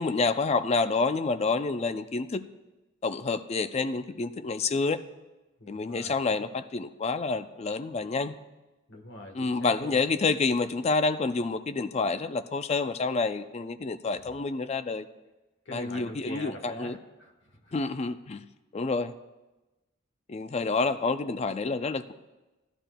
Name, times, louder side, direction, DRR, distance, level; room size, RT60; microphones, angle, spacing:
voice 1, 0.0-2.4 3.0-5.0 5.7-8.3 9.3-15.1 15.7-17.0 17.7-18.5 18.7-19.1 20.3-22.1, left 4 dB, 30° left, 11 dB, 0.4 m, -28 dB
voice 2, 5.6-6.4 8.9-10.0 14.1-14.4 15.6-17.9 20.5-20.9, equal, 55° left, 3 dB, 1.2 m, -44 dB
16.0 x 12.0 x 2.2 m, 1.1 s
head